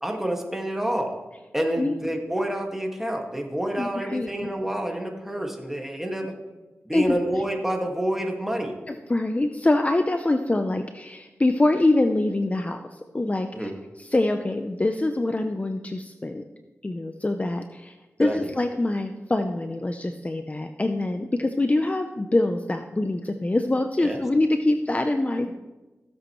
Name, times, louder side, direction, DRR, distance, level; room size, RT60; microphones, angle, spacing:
voice 1, 0.0-1.2 1.5-6.3 6.8-8.8 13.5-13.7 18.2-18.5 24.0-24.2, right 1 dB, 5° right, 2 dB, 1.9 m, -28 dB
voice 2, 3.8-4.5 6.9-7.2 8.9-13.7 14.0-16.4 16.8-25.5, left 2 dB, 30° left, 7 dB, 0.7 m, -24 dB
16.0 x 7.8 x 3.2 m, 1.1 s
cardioid pair, 50°, 5 cm